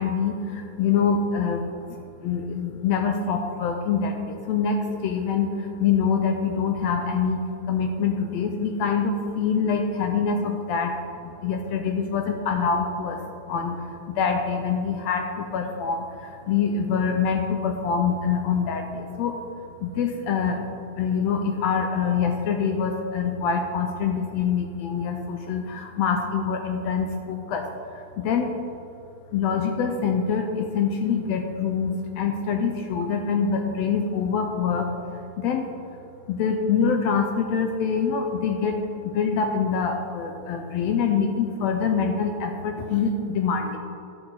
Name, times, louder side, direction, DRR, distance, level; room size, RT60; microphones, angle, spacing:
voice 1, 0.0-7.4 7.7-11.0 11.2-13.2 13.5-19.4 19.8-27.7 27.9-28.6 29.3-34.9 35.4-35.7 36.3-38.8 39.0-43.8, left 6 dB, 80° left, 4 dB, 1.6 m, -25 dB
11.5 x 6.2 x 4.0 m, 2.6 s
omnidirectional pair, 3.4 m